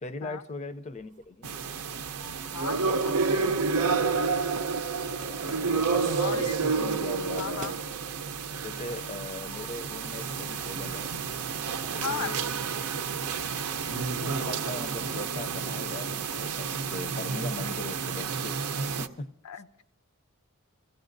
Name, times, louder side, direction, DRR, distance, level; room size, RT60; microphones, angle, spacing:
voice 1, 0.0-1.6 5.2-7.8 8.6-11.1 11.9-13.3 13.9-18.6 19.0-19.4, left 3 dB, 30° left, 0.5 m, -40 dB
sound 1, 0.9-1.6 2.0-4.2 5.2-5.8 7.1-7.2 7.4-8.2, right 5 dB, 35° right, 0.5 m, -48 dB
sound 2, 1.4-19.1, right 5 dB, 90° right, 0.6 m, -30 dB
voice 2, 2.5-3.6 5.8-6.6 7.3-7.7 11.9-12.3 19.4-19.8, left 6 dB, 85° left, 0.6 m, -37 dB
27.5 x 15.5 x 2.6 m
head